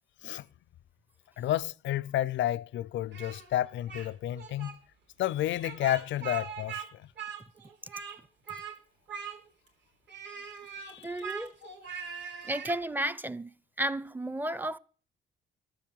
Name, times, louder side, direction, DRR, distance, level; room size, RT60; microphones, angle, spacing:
voice 1, 1.4-4.8 5.2-7.1 10.7-11.3, left 13 dB, 70° left, 0.5 m, -31 dB
Speech, 3.1-4.1 4.4-4.7 5.6-6.9 7.2-8.2 8.5-8.8 9.1-9.7 10.1-12.8, right 7 dB, 65° right, 3.9 m, -41 dB
voice 2, 11.0-11.5 12.4-13.5 13.8-14.8, right 1 dB, 10° right, 0.5 m, -32 dB
12.5 x 7.5 x 7.5 m
cardioid pair, 90°, 20 cm